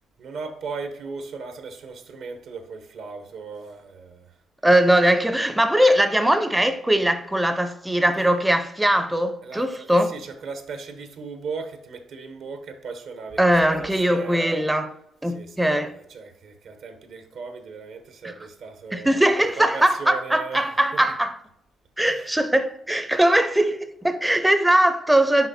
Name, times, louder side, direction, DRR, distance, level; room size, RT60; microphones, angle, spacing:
voice 1, 0.2-4.3 8.2-8.3 9.4-14.6 15.2-21.0 22.0-22.3, right 4 dB, 70° right, 0.9 m, -37 dB
voice 2, 4.6-10.1 13.4-14.9 15.2-15.9 18.2-18.3 18.9-21.3 22.0-25.5, right 1 dB, 10° right, 0.5 m, -20 dB
5.9 x 5.5 x 4.1 m
cardioid pair, 90°, 0 cm